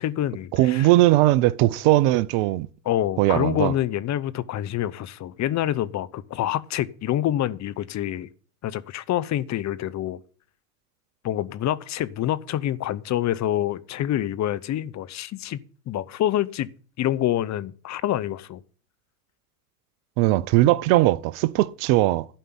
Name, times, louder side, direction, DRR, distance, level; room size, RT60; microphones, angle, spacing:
voice 1, 0.0-0.9 2.8-8.3 8.6-10.2 11.2-16.7 17.0-18.6, left 12 dB, 35° left, 0.8 m, -27 dB
voice 2, 0.5-2.7 3.2-3.7 20.2-22.3, right 17 dB, 55° right, 0.8 m, -19 dB
12.0 x 5.5 x 8.8 m
hypercardioid pair, 90°, 47 cm